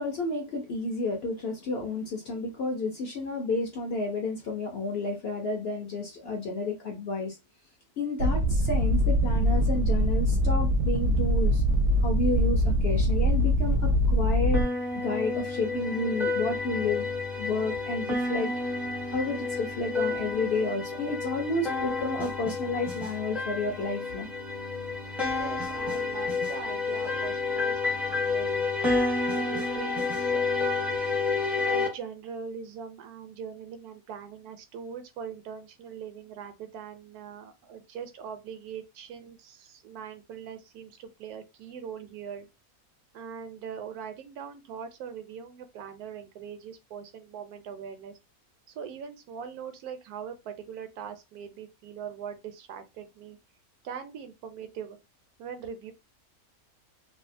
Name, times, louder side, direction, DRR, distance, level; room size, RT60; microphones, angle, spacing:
voice 1, 0.0-7.4 8.0-11.6 12.0-14.6 15.0-17.1 17.4-18.5 19.1-24.3, left 2 dB, 60° left, 0.6 m, -31 dB
sound 1, 8.2-14.6, equal, 65° right, 0.8 m, -23 dB
sound 2, 14.5-31.9, left 3 dB, ahead, 0.4 m, -30 dB
voice 2, 25.3-30.4 31.6-42.5 43.1-48.1 48.7-53.4 53.8-55.0 55.4-55.9, right 7 dB, 85° right, 1.1 m, -41 dB
2.7 x 2.3 x 2.5 m
omnidirectional pair, 1.6 m